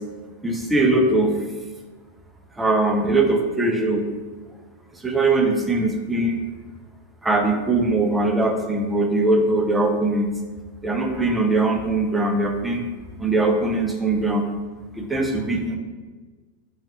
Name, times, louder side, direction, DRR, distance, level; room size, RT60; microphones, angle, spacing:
voice 1, 0.4-1.3 2.6-4.0 5.0-6.4 7.2-10.3 10.8-12.8 13.2-14.4 14.9-15.8, right 2 dB, 10° right, 2 dB, 0.5 m, -21 dB
4.3 x 2.7 x 3.1 m, 1.4 s
figure-of-eight pair, 90°, 0 cm